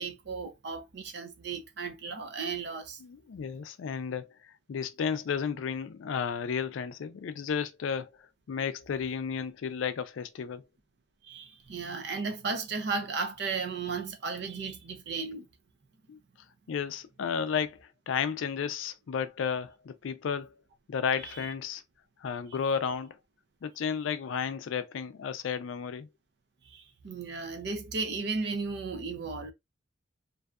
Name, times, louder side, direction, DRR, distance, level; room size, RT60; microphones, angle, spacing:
voice 1, 0.0-3.0 11.2-15.5 26.6-29.5, right 4 dB, 55° right, 0.5 m, -35 dB
voice 2, 3.0-4.3 4.7-8.1 8.5-10.6 16.1-16.2 16.7-20.5 20.9-21.8 22.2-23.1 23.6-26.1, left 6 dB, 80° left, 0.4 m, -33 dB
2.6 x 2.2 x 2.3 m
head